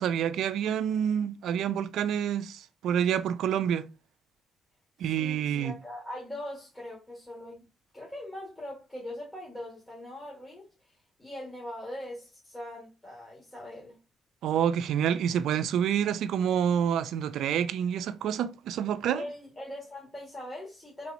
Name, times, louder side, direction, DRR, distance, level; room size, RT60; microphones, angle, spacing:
voice 1, 0.0-3.9 5.0-5.7 14.4-19.2, right 9 dB, 80° right, 0.3 m, -28 dB
voice 2, 5.2-7.6 7.9-14.0 19.2-21.1, left 1 dB, 15° left, 1.4 m, -41 dB
3.4 x 3.0 x 2.5 m
cardioid pair, 90°, 0 cm